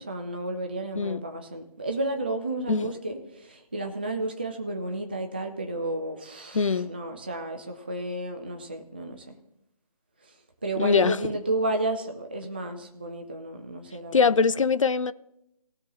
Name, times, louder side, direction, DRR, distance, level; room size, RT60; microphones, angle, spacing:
voice 1, 0.0-9.3 10.6-14.3, right 2 dB, 15° right, 0.4 m, -32 dB
voice 2, 6.5-6.9 10.8-11.2 14.1-15.1, left 5 dB, 55° left, 0.5 m, -22 dB
18.0 x 6.1 x 4.0 m
figure-of-eight pair, 150°, 20 cm